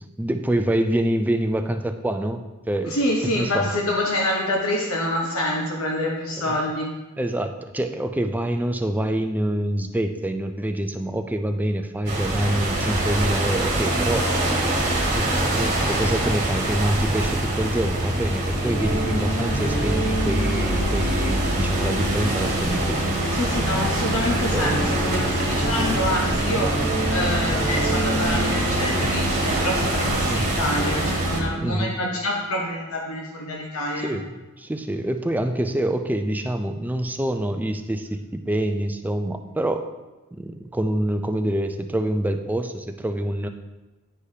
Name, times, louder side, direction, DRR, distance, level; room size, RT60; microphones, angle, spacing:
voice 1, 0.0-3.0 3.4-3.7 6.4-6.6 7.2-14.3 15.1-15.3 15.5-23.0 24.5-24.8 30.3-30.6 31.6-32.0 34.0-39.9 40.3-43.5, right 1 dB, 10° right, 6 dB, 0.3 m, -26 dB
voice 2, 2.9-6.9 23.3-34.1, left 1 dB, 80° left, -1 dB, 0.9 m, -26 dB
sound 1, 12.1-31.4, right 1 dB, 35° right, 1.4 m, -24 dB
sound 2, 18.5-31.8, right 1 dB, 50° left, 1.9 m, -30 dB
9.9 x 4.9 x 2.7 m, 1.1 s
head